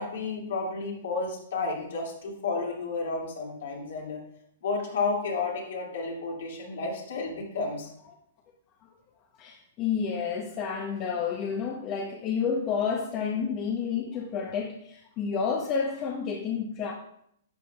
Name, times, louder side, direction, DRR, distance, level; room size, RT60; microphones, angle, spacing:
voice 1, 0.0-4.2 4.6-7.9, left 3 dB, 70° left, -2 dB, 2.3 m, -31 dB
voice 2, 9.4-16.9, left 6 dB, 35° left, 1 dB, 0.8 m, -30 dB
10.5 x 6.2 x 2.3 m, 0.71 s
hypercardioid pair, 130°, 0 cm